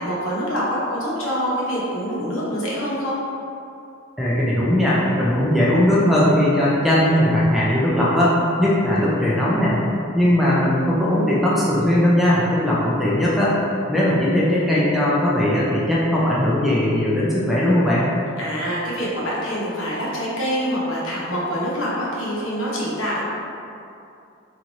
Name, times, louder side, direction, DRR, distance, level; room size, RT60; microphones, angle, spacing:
voice 1, 0.0-3.2 18.4-23.2, equal, 75° left, -6 dB, 0.9 m, -25 dB
voice 2, 4.2-9.8 10.1-13.6 13.9-18.1, left 1 dB, ahead, -8 dB, 0.4 m, -19 dB
3.0 x 2.5 x 3.9 m, 2.6 s
head